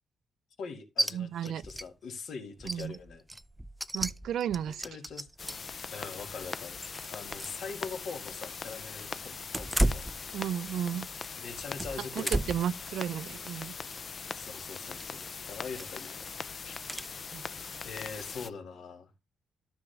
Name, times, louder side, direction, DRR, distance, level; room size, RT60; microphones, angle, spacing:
voice 1, 0.6-3.2 4.6-5.3 5.9-6.8 7.1-10.1 11.4-12.5 14.3-16.3 16.6-16.8 17.8-19.1, left 5 dB, 65° left, 2.0 m, -42 dB
sound 1, 1.0-1.1 1.4-1.9 2.2-2.3 2.6-5.7 6.3-7.6 7.9-8.0 9.4-10.9 11.2-12.7 13.2-13.5 14.9-15.2 15.7-16.1 16.9-17.1, right 1 dB, 5° right, 0.4 m, -34 dB
voice 2, 1.1-1.6 2.6-3.0 3.9-4.8 10.3-11.1 12.2-13.7 17.3-17.4, right 9 dB, 70° right, 0.4 m, -33 dB
sound 2, 5.4-18.5, left 5 dB, 40° left, 0.6 m, -41 dB
13.0 x 6.2 x 3.4 m
cardioid pair, 135°, 0 cm